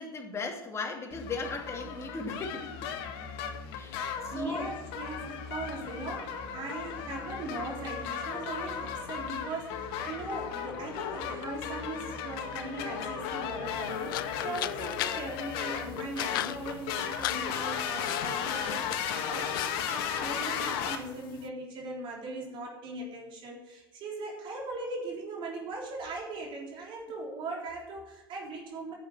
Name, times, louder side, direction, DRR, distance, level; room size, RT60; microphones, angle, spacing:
voice 1, 0.0-2.7 3.7-4.7 14.4-14.5, left 4 dB, 25° left, 2 dB, 2.6 m, -37 dB
sound 1, 1.1-21.0, left 7 dB, 55° left, 1.9 m, -35 dB
voice 2, 4.3-28.9, right 2 dB, 45° right, -1 dB, 3.7 m, -39 dB
sound 2, 13.7-21.5, left 15 dB, 70° left, 0.5 m, -40 dB
10.0 x 8.3 x 7.8 m, 1.0 s
hypercardioid pair, 95°, 12 cm